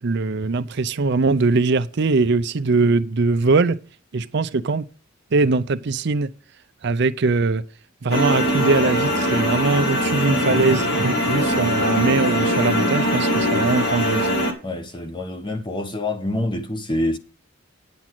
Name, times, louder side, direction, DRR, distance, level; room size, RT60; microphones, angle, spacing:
voice 1, 0.0-3.8 4.1-4.8 5.3-6.3 6.8-7.6 8.0-14.3, right 3 dB, 55° right, 0.5 m, -21 dB
sound 1, 8.1-14.5, equal, 50° left, 1.7 m, -21 dB
voice 2, 14.6-17.2, left 1 dB, 25° left, 0.9 m, -26 dB
9.4 x 6.2 x 5.9 m
head